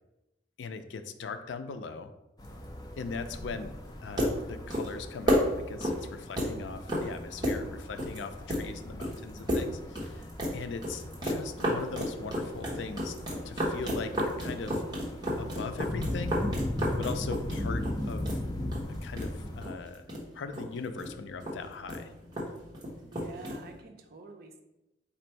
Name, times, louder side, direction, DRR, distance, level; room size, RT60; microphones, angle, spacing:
voice 1, 0.6-2.1 3.0-3.7 4.0-10.2 10.5-13.2 13.4-14.8 15.4-16.4 17.0-18.4 19.0-20.1 20.3-22.1, left 4 dB, 80° left, 9 dB, 0.4 m, -40 dB
sound 1, 2.4-19.6, left 1 dB, 20° left, 0.5 m, -39 dB
sound 2, 3.9-23.8, equal, 25° right, 1.0 m, -33 dB
voice 2, 23.1-24.6, right 4 dB, 55° right, 5 dB, 0.5 m, -48 dB
4.2 x 2.6 x 4.4 m, 0.95 s
head